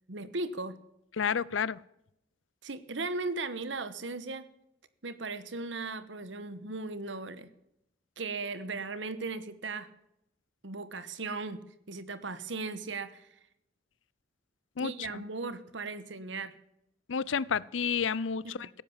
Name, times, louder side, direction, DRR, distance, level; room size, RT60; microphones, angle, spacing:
voice 1, 0.1-0.7 2.6-4.4 5.0-7.5 8.2-9.9 10.6-11.6 11.9-13.3 14.8-16.5 18.4-18.8, right 3 dB, 70° right, 14 dB, 1.3 m, -37 dB
voice 2, 1.2-1.8 14.8-15.2 17.1-18.8, left 6 dB, 90° left, 22 dB, 0.6 m, -31 dB
16.5 x 10.5 x 7.3 m, 0.80 s
head